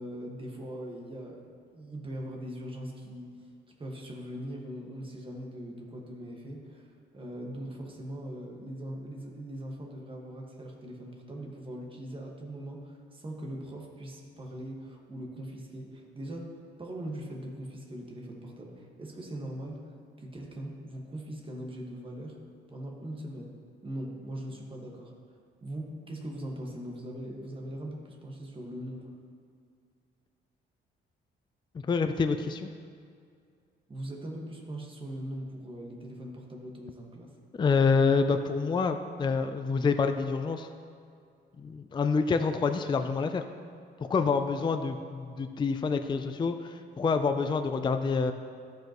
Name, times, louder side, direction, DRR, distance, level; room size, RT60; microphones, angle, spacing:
voice 1, 0.0-3.3 3.8-16.5 16.8-19.9 20.2-22.4 22.7-23.5 23.8-29.1 33.9-37.3, right 1 dB, 25° right, 0 dB, 1.6 m, -41 dB
voice 2, 31.8-32.7 37.5-40.7 41.6-43.4 44.1-48.3, left 4 dB, 25° left, 8 dB, 0.4 m, -27 dB
14.5 x 5.3 x 3.0 m, 2.3 s
cardioid pair, 90°, 20 cm